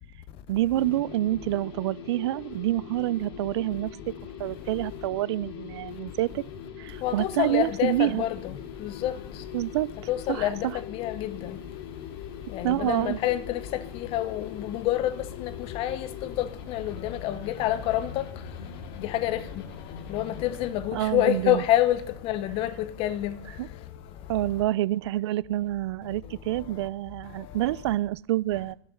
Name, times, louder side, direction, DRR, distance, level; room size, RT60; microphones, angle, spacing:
voice 1, 0.5-4.0 4.4-6.4 6.8-8.2 9.5-9.9 10.3-10.5 12.6-13.2 20.9-21.6 23.6-23.7 24.3-28.8, right 15 dB, 65° right, 0.4 m, -27 dB
sound 1, 0.7-20.7, left 7 dB, 55° left, 2.0 m, -42 dB
voice 2, 7.0-8.5 8.8-9.2 10.1-11.6 12.5-18.2 19.0-19.5 20.1-23.4, left 13 dB, 40° left, 1.0 m, -28 dB
15.5 x 6.8 x 5.7 m
hypercardioid pair, 125°, 15 cm